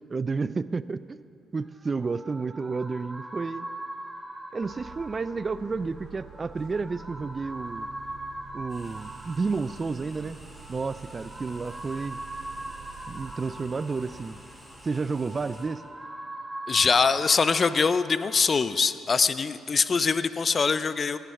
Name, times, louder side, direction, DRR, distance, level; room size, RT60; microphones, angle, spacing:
voice 1, 0.1-1.2 1.5-3.7 4.5-7.9 8.5-10.4 10.7-12.2 13.1-14.4 14.8-15.8, right 4 dB, 30° right, 16 dB, 0.3 m, -31 dB
sound 1, 1.6-18.6, right 1 dB, 10° right, 1.2 m, -42 dB
sound 2, 4.6-14.3, right 6 dB, 90° right, 2.3 m, -49 dB
sound 3, 8.7-15.7, equal, 5° left, 3.7 m, -51 dB
voice 2, 16.7-21.2, left 5 dB, 40° left, 14 dB, 0.5 m, -23 dB
17.0 x 9.2 x 5.8 m, 2.6 s
cardioid pair, 90°, 0 cm